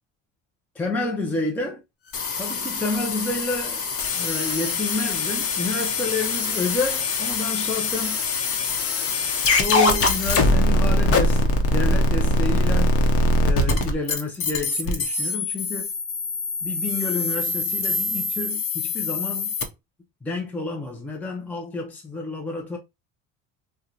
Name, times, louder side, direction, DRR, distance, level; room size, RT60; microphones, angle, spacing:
voice 1, 0.8-1.8 2.4-3.8 4.1-8.2 9.5-12.9 13.4-15.9 16.6-19.5 20.2-22.8, left 3 dB, 5° left, 0.5 m, -29 dB
sound 1, 2.1-19.6, left 2 dB, 40° left, 0.8 m, -23 dB
2.9 x 2.2 x 3.8 m
cardioid pair, 125°, 34 cm